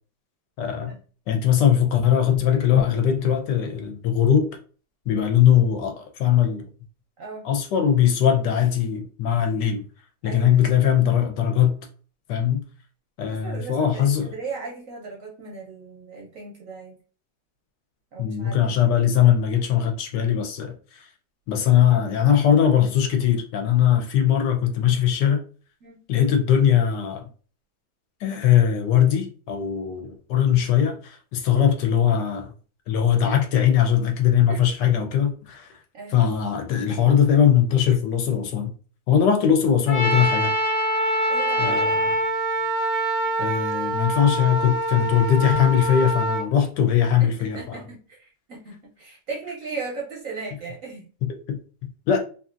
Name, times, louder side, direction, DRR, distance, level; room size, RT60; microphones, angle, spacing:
voice 1, 0.6-1.0 1.3-4.5 5.1-6.7 7.4-9.9 10.2-11.8 12.3-12.6 13.2-14.3 18.2-21.1 21.5-25.4 26.1-27.3 28.2-32.5 32.9-35.7 36.1-38.7 39.1-40.5 41.6-42.1 43.4-47.8 51.2-52.2, left 9 dB, 75° left, 1.2 m, -20 dB
voice 2, 10.2-10.6 13.3-17.0 18.1-18.6 25.8-26.0 34.5-34.6 35.9-36.2 41.3-41.8 47.2-51.1, right 4 dB, 60° right, 0.9 m, -37 dB
Trumpet, 39.9-46.4, right 1 dB, 55° left, 0.6 m, -24 dB
2.9 x 2.6 x 2.4 m
omnidirectional pair, 2.0 m